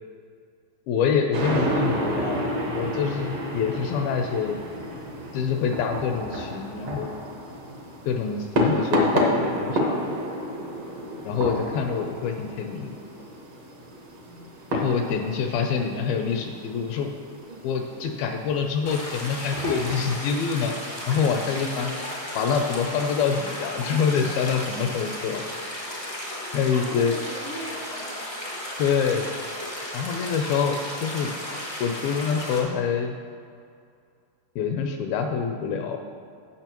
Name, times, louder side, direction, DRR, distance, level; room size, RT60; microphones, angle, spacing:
voice 1, 0.9-2.5 2.7-4.6 5.3-7.1 8.1-10.2 11.2-12.9 14.7-17.1 17.6-20.7 21.1-21.9 22.4-25.4 26.5-27.1 28.8-29.3 29.9-31.3 31.8-33.1 34.6-36.0, left 6 dB, 80° left, 5 dB, 2.2 m, -26 dB
sound 1, 1.3-19.9, equal, 65° right, 1.6 m, -30 dB
voice 2, 10.6-11.0 14.3-14.5 17.5-17.7 17.9-18.0 18.4-18.5 26.7-28.4, right 1 dB, 90° right, -8 dB, 1.1 m, -41 dB
sound 2, 18.8-32.6, left 1 dB, 35° left, 0.4 m, -34 dB
17.0 x 6.2 x 3.0 m, 2.3 s
omnidirectional pair, 4.6 m